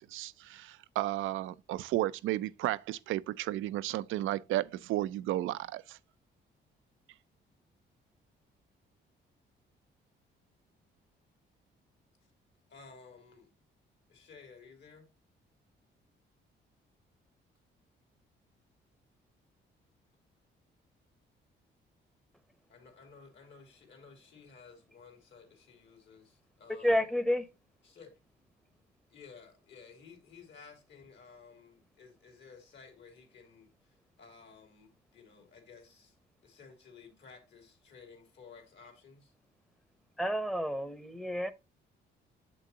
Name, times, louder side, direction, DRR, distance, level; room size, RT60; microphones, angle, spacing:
voice 1, 0.1-6.0, right 15 dB, 85° right, 0.5 m, -33 dB
voice 2, 12.7-13.5 14.1-15.1 22.7-27.2 27.8-28.1 29.1-36.2 36.4-39.3, left 5 dB, 65° left, 3.1 m, -55 dB
voice 3, 26.8-27.4 40.2-41.5, equal, 5° left, 0.8 m, -30 dB
7.4 x 6.2 x 2.8 m
cardioid pair, 90°, 20 cm